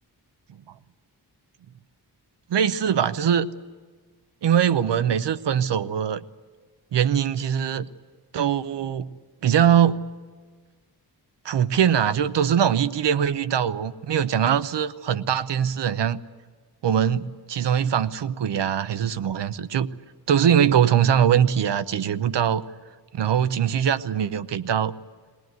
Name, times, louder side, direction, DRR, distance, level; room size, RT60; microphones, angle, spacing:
voice 1, 2.5-3.5 4.4-6.2 6.9-7.9 8.3-9.1 9.4-10.0 11.4-16.2 16.8-19.9 20.3-22.6 23.1-24.9, right 9 dB, 80° right, 14 dB, 0.8 m, -22 dB
21.5 x 18.5 x 9.3 m, 1.5 s
wide cardioid pair, 165°, 41 cm